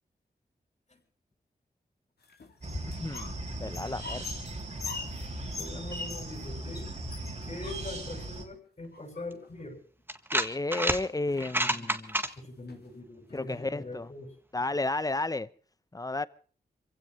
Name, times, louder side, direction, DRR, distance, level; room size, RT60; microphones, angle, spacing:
sound 1, 2.2-3.4 3.7-6.5 6.7-6.9 7.1-8.2 8.9-9.6 10.7-10.8 11.1-11.6 12.1-12.3 12.7-12.8 13.3-14.1, left 4 dB, 70° left, 2.5 m, -43 dB
sound 2, 2.6-8.5, right 1 dB, 40° right, 3.2 m, -38 dB
voice 1, 3.0-3.3 3.6-4.2 10.3-12.2 13.3-14.1 14.5-15.5 15.9-16.3, left 2 dB, 20° left, 0.8 m, -32 dB
voice 2, 5.6-6.9 7.4-9.8 11.6-11.9 12.3-14.3, left 2 dB, 40° left, 6.4 m, -42 dB
sound 3, 9.3-9.4 10.1-11.0 11.4-12.3, right 1 dB, 10° right, 1.7 m, -28 dB
26.0 x 16.5 x 3.2 m
cardioid pair, 65°, 17 cm